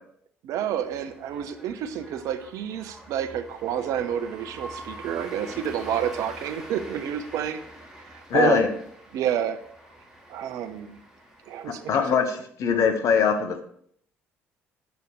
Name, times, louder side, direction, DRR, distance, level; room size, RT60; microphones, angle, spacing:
voice 1, 0.4-7.6 8.3-8.7 9.1-9.6 10.3-11.0 11.5-12.0, right 9 dB, 60° right, 10 dB, 0.7 m, -29 dB
sound 1, 0.8-12.1, right 1 dB, 5° right, 3.2 m, -45 dB
voice 2, 8.3-8.7 11.7-13.6, left 6 dB, 55° left, 6 dB, 1.0 m, -22 dB
8.1 x 4.7 x 4.9 m, 0.66 s
figure-of-eight pair, 50°, 6 cm